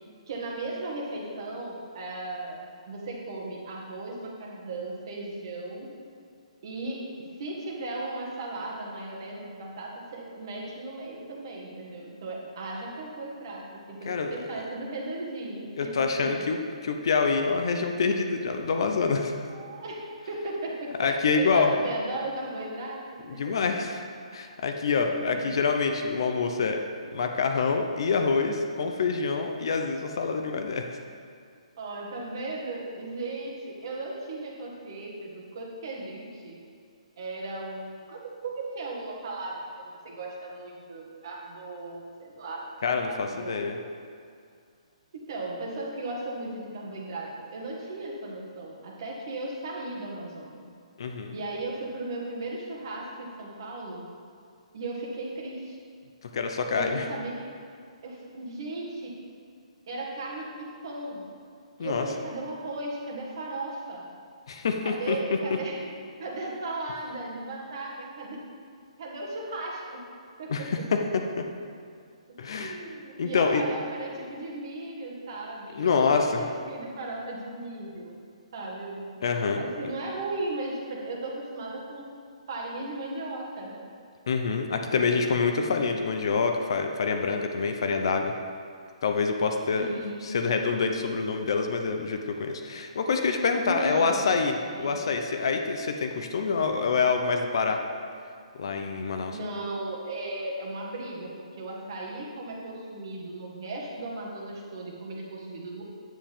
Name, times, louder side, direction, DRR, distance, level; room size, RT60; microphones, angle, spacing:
voice 1, 0.3-5.9 6.6-7.1 7.4-15.9 16.2-16.3 19.5-23.6 25.2-25.6 31.8-36.6 37.2-42.7 43.0-43.8 45.1-50.6 51.3-54.1 54.7-55.8 56.7-57.5 58.0-59.2 59.9-61.3 61.8-64.1 64.8-65.8 66.2-68.4 69.0-70.0 70.4-70.9 72.3-78.2 78.5-79.2 79.6-82.1 82.5-83.9 84.9-85.3 85.6-85.7 89.7-90.4 93.6-94.4 94.7-95.3 99.3-105.8, right 2 dB, 35° right, -2 dB, 1.6 m, -36 dB
voice 2, 15.8-19.3 21.0-21.7 23.3-24.0 24.3-26.8 27.1-30.8 42.8-43.8 51.0-51.4 56.3-57.0 61.8-62.1 64.5-65.2 70.5-70.6 70.9-71.4 72.4-72.8 73.2-73.6 75.7-76.4 79.2-79.6 84.3-88.3 89.0-89.9 90.2-97.8 98.5-99.4, left 5 dB, 45° left, 4 dB, 0.7 m, -26 dB
10.0 x 9.2 x 3.6 m, 2.3 s
hypercardioid pair, 180°, 4 cm